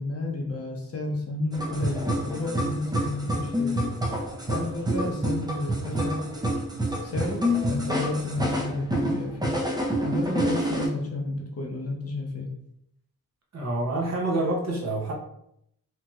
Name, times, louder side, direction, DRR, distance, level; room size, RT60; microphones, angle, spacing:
voice 1, 0.0-3.9 4.5-6.2 7.0-9.5 10.0-12.5, left 2 dB, 40° left, 0 dB, 0.5 m, -31 dB
sound 1, 1.5-10.9, equal, 10° right, 0.3 m, -28 dB
voice 2, 13.5-15.1, right 2 dB, 45° right, -1 dB, 0.6 m, -27 dB
2.9 x 2.7 x 2.3 m, 0.75 s
wide cardioid pair, 170°, 36 cm